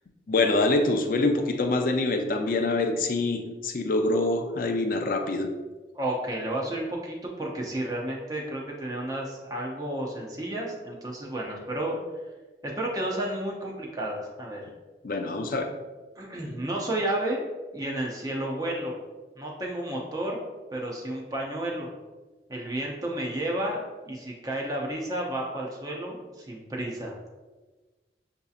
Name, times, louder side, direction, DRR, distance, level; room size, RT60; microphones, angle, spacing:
voice 1, 0.3-5.5 15.0-15.7, left 2 dB, 50° left, 5 dB, 0.4 m, -25 dB
voice 2, 5.9-12.0 12.6-14.6 16.2-17.4 17.7-18.9 19.4-20.4 20.7-21.9 22.5-27.2, right 1 dB, 20° right, -2 dB, 0.6 m, -32 dB
6.6 x 2.7 x 2.4 m, 1.2 s
head